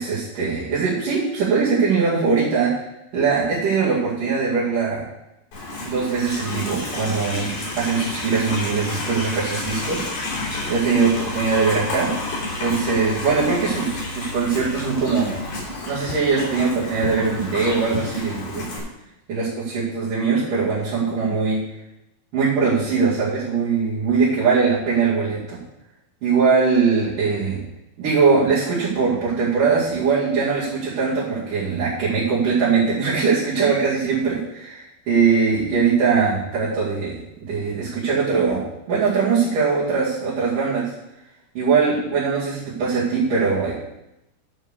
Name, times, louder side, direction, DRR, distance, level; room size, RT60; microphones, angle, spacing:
voice 1, 0.0-2.8 3.1-5.0 5.9-10.1 10.7-12.1 12.6-15.4 15.9-18.8 19.3-21.6 22.3-25.6 26.2-27.6 28.0-37.1 37.4-40.9 41.6-43.7, right 5 dB, 80° right, -10 dB, 4.1 m, -21 dB
Livestock farm animals working animals, 5.5-18.8, left 2 dB, 65° left, 4.9 m, -30 dB
sound 1, 9.7-15.8, equal, 90° left, 2.2 m, -38 dB
11.5 x 5.5 x 6.7 m, 0.90 s
omnidirectional pair, 3.7 m